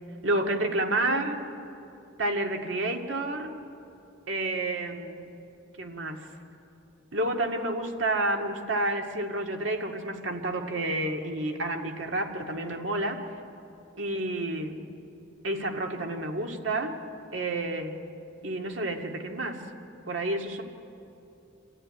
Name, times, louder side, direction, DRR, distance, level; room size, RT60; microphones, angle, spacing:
voice 1, 0.2-1.4 2.2-3.5 4.3-5.3 5.8-6.3 7.1-13.2 14.0-14.8 15.4-17.0 17.3-17.9 18.4-19.6 20.1-20.6, right 2 dB, 85° right, 3 dB, 2.1 m, -30 dB
27.5 x 14.5 x 9.9 m, 2.7 s
head